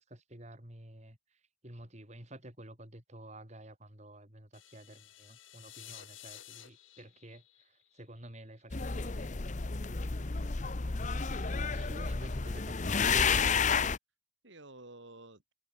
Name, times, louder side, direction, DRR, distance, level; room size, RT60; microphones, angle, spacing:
voice 1, 0.0-9.3 11.9-13.6, right 1 dB, 35° right, 4.9 m, -50 dB
sound 1, 4.5-8.6, left 12 dB, 90° left, 3.5 m, -53 dB
sound 2, 8.7-14.0, left 5 dB, 40° left, 0.8 m, -31 dB
voice 2, 10.2-10.5 11.3-11.9 12.4-12.6 14.4-15.4, right 2 dB, 70° right, 5.1 m, -53 dB
head